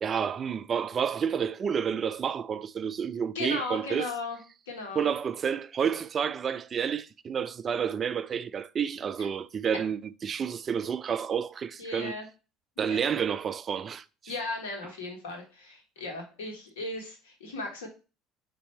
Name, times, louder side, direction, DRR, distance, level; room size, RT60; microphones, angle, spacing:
voice 1, 0.0-4.1 5.0-12.2 12.8-14.3, right 7 dB, 40° right, 0.3 m, -30 dB
voice 2, 3.3-4.4 4.7-5.1 9.2-9.3 11.8-12.2 12.8-13.1 14.3-17.9, left 3 dB, 85° left, 1.3 m, -36 dB
4.2 x 2.7 x 4.3 m
hypercardioid pair, 80°, 0 cm